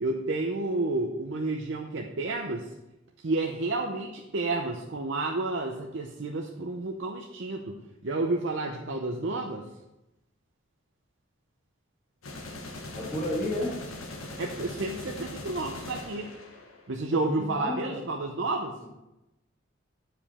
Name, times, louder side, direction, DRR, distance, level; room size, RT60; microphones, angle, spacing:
voice 1, 0.0-2.7 3.2-7.8 8.0-9.6 14.4-16.3 16.9-18.7, right 2 dB, 65° right, 1 dB, 0.7 m, -30 dB
sound 1, 12.2-17.1, left 2 dB, 85° left, 1.2 m, -41 dB
voice 2, 12.9-13.7 17.1-18.0, left 1 dB, 20° left, -11 dB, 2.6 m, -31 dB
9.0 x 5.1 x 4.2 m, 0.94 s
head